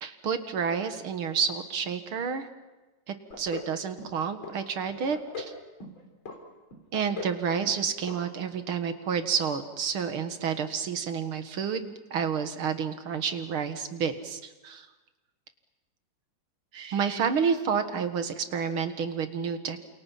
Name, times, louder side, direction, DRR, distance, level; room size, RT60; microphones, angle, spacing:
voice 1, 0.0-2.5 3.1-5.5 6.9-14.9 16.7-19.8, right 6 dB, 85° right, 8 dB, 2.5 m, -30 dB
sound 1, 3.3-3.7 4.0-4.6 4.9-5.5 5.8-6.4 6.7-7.4 7.6-7.8 8.1-8.2 8.5-8.6, left 3 dB, 70° left, 4.4 m, -39 dB
29.5 x 28.0 x 5.7 m, 1.1 s
omnidirectional pair, 2.3 m